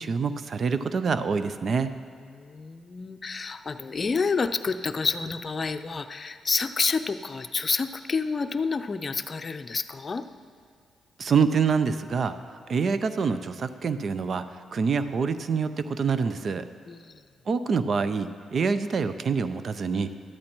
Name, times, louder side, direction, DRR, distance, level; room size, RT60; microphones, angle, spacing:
voice 1, 0.0-2.0 11.2-12.3 12.7-14.4 14.7-16.6 17.5-20.1, right 5 dB, 55° right, 12 dB, 0.6 m, -26 dB
voice 2, 2.2-10.2 16.9-17.2, left 4 dB, 45° left, 10 dB, 0.5 m, -29 dB
13.5 x 12.5 x 3.0 m, 2.2 s
supercardioid pair, 50°, 0 cm